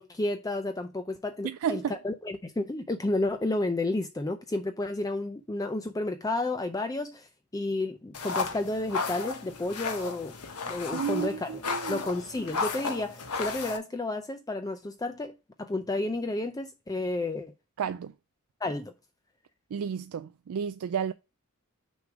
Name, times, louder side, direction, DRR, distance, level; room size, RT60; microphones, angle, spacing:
voice 1, 0.0-7.3 7.5-10.3 10.7-11.6 11.9-17.5 18.6-18.9, left 2 dB, 15° left, 0.4 m, -31 dB
voice 2, 1.4-2.0 10.9-12.0 17.8-18.1 19.7-21.1, right 7 dB, 65° right, 0.3 m, -32 dB
sound 1, 8.1-13.8, left 4 dB, 80° left, 1.1 m, -34 dB
6.2 x 3.5 x 4.8 m
head